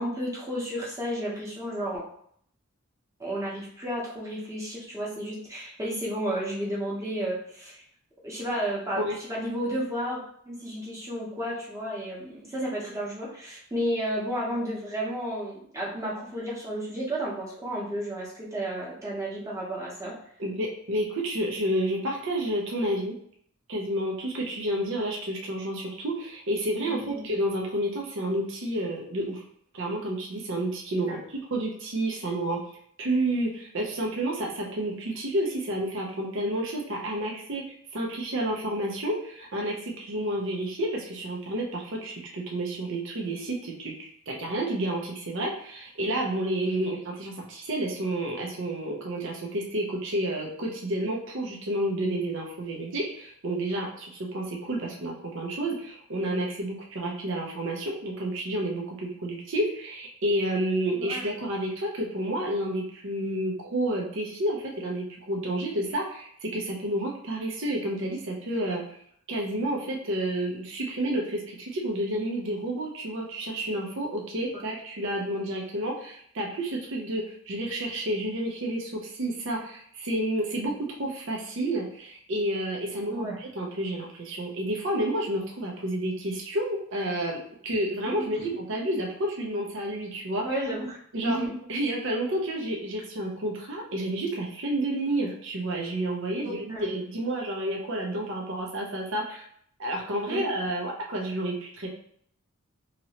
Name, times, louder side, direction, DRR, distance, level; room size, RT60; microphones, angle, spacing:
voice 1, 0.0-2.0 3.2-7.8 8.2-20.1 26.9-27.2 31.1-31.2 61.0-61.2 83.1-83.4 88.1-88.4 90.5-91.6 96.4-96.8 100.3-100.4, equal, 15° right, -6 dB, 0.9 m, -32 dB
voice 2, 20.4-23.1 23.7-29.4 29.7-32.6 33.0-37.6 37.9-69.0 69.3-90.4 91.1-91.4 91.7-99.4 99.8-101.9, right 1 dB, 60° right, -1 dB, 0.6 m, -30 dB
2.9 x 2.7 x 2.8 m, 0.64 s
head